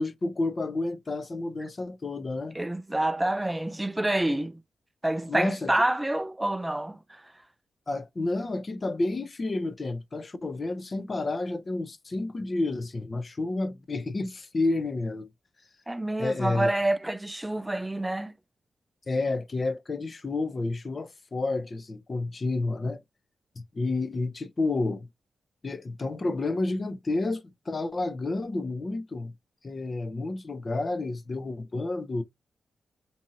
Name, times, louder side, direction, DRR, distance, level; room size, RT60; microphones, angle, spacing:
voice 1, 0.0-2.6 5.3-5.7 7.9-15.3 16.2-16.7 19.1-23.0 23.7-25.1 25.6-29.3 29.6-32.2, left 2 dB, 40° left, 0.5 m, -30 dB
voice 2, 2.5-4.6 5.0-7.2 15.9-18.3, right 1 dB, 15° right, 0.3 m, -28 dB
2.7 x 2.6 x 2.6 m
cardioid pair, 60°, 0 cm